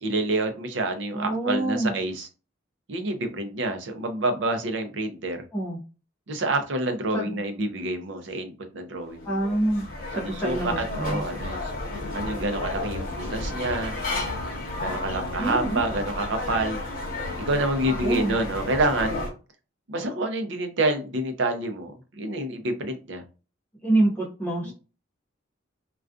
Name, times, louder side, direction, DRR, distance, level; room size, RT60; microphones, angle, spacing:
voice 1, 0.0-2.3 2.9-5.4 6.3-9.4 10.1-11.8 12.1-13.9 14.8-16.8 17.5-19.2 19.9-23.2 24.6-24.7, right 2 dB, 60° right, 6 dB, 0.5 m, -28 dB
voice 2, 1.1-1.9 5.5-5.8 7.1-7.4 9.2-11.3 15.4-15.8 18.0-18.4 23.8-24.7, right 2 dB, 10° left, -4 dB, 0.5 m, -26 dB
sound 1, 9.0-19.3, left 2 dB, 45° left, 0.9 m, -32 dB
2.3 x 2.3 x 2.4 m, 0.33 s
head